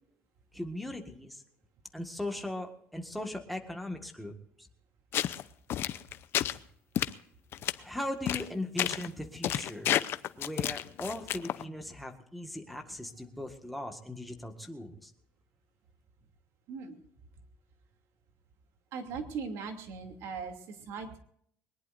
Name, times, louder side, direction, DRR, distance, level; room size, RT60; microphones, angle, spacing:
voice 1, 0.5-1.4 1.9-4.3 4.6-4.7 7.8-9.9 10.4-15.1, left 1 dB, ahead, 3 dB, 1.8 m, -38 dB
sound 1, 5.1-5.4 5.7-6.6 7.0-7.1 7.5-7.7 8.3-8.5 8.8-9.1 9.4-11.6, left 11 dB, 50° left, 0.7 m, -30 dB
voice 2, 16.7-17.0 18.9-21.2, right 5 dB, 65° right, 4 dB, 2.8 m, -39 dB
22.0 x 20.0 x 2.6 m, 0.66 s
cardioid pair, 170°, 5 cm